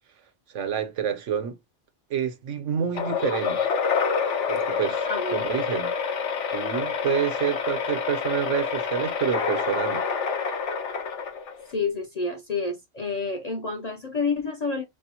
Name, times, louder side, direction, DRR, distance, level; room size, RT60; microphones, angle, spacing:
voice 1, 0.5-1.6 2.1-3.6 4.5-5.1 5.3-5.9 6.5-10.0, right 8 dB, 85° right, 1.2 m, -28 dB
sound 1, 2.9-11.7, left 6 dB, 75° left, 1.1 m, -27 dB
voice 2, 5.0-5.5 11.7-14.8, left 4 dB, 50° left, 0.5 m, -29 dB
5.2 x 2.0 x 2.8 m
omnidirectional pair, 1.2 m